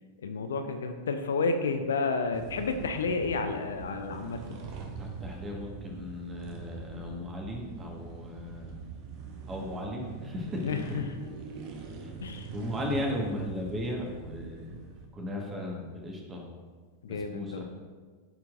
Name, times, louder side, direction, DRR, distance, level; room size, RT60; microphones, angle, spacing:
voice 1, 0.2-4.6 10.6-11.1 12.2-12.5 17.0-17.6, left 4 dB, 65° left, 7 dB, 0.5 m, -31 dB
sound 1, 2.3-15.1, right 5 dB, 45° right, 0.9 m, -43 dB
voice 2, 5.0-8.8 9.5-10.6 12.0-12.1 12.5-14.9 15.1-16.5 17.0-17.6, left 1 dB, 20° right, 0 dB, 1.5 m, -36 dB
13.5 x 4.5 x 2.5 m, 1.5 s
figure-of-eight pair, 90°, 0 cm